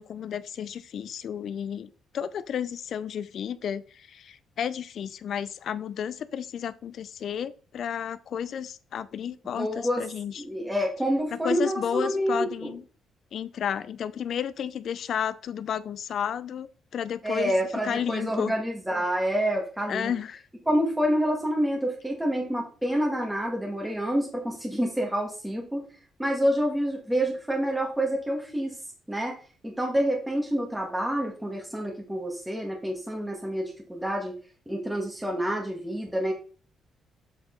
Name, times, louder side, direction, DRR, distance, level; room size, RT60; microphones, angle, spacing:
voice 1, 0.0-10.4 11.3-12.8 13.3-17.5 17.8-18.5 19.9-20.4, left 8 dB, 65° left, 16 dB, 0.5 m, -32 dB
voice 2, 9.5-10.0 10.4-12.7 17.2-20.1 20.7-25.9 26.2-28.7 29.1-29.4 29.6-34.4 34.7-36.3, equal, 5° right, -1 dB, 1.6 m, -28 dB
7.4 x 5.1 x 3.8 m, 0.38 s
cardioid pair, 90°, 0 cm